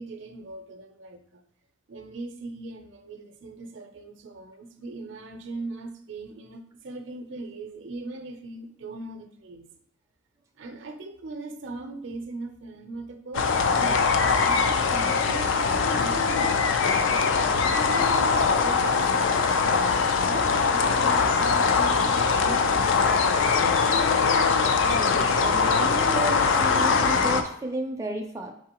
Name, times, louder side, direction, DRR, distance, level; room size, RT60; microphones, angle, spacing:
voice 1, 0.0-1.4 1.9-9.7 10.6-16.5 17.3-19.5 20.2-23.8, right 2 dB, 65° right, 6 dB, 0.5 m, -40 dB
sound 1, 13.3-27.4, left 5 dB, 70° left, 0.4 m, -22 dB
voice 2, 24.8-28.5, right 1 dB, 15° right, 1 dB, 0.4 m, -32 dB
4.6 x 3.6 x 2.9 m, 0.69 s
head